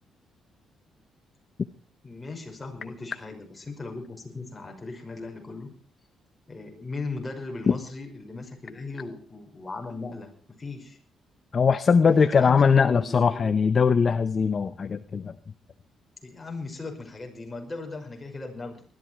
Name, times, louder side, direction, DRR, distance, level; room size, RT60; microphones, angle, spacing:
voice 1, 2.0-5.7 6.5-10.3 10.6-11.0 12.0-13.5 16.2-18.8, left 3 dB, 20° left, 2 dB, 5.8 m, -37 dB
voice 2, 11.5-15.3, left 6 dB, 40° left, 12 dB, 0.7 m, -21 dB
20.0 x 13.0 x 4.6 m, 0.39 s
cardioid pair, 90°, 0 cm